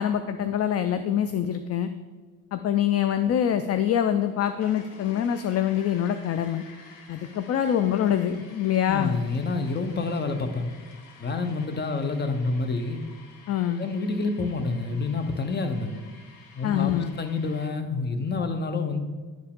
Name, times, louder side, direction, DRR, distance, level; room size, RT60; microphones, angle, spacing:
voice 1, 0.0-1.9 2.5-6.6 7.1-9.2 13.5-13.9 16.6-17.1, left 10 dB, 45° left, 10 dB, 0.4 m, -25 dB
sound 1, 3.9-17.7, left 4 dB, 75° left, 1.1 m, -51 dB
voice 2, 8.9-10.7 11.2-13.0 13.8-15.9 16.5-19.0, left 3 dB, 30° left, 8 dB, 0.9 m, -28 dB
10.5 x 4.6 x 3.7 m, 1.4 s
cardioid pair, 95°, 34 cm